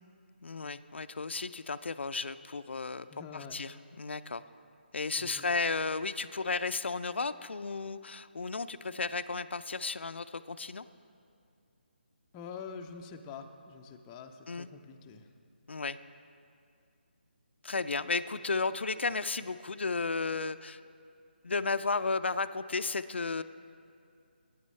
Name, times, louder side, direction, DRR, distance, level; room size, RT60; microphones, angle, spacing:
voice 1, 0.4-3.1 3.3-3.7 4.0-4.4 4.9-10.8 14.5-14.7 15.7-16.0 17.6-20.8 21.4-23.4, left 4 dB, 85° left, 12 dB, 0.3 m, -33 dB
voice 2, 3.1-3.6 5.2-5.5 12.3-15.3, left 6 dB, 15° left, 4 dB, 0.4 m, -46 dB
15.5 x 9.5 x 3.2 m, 2.4 s
figure-of-eight pair, 155°, 6 cm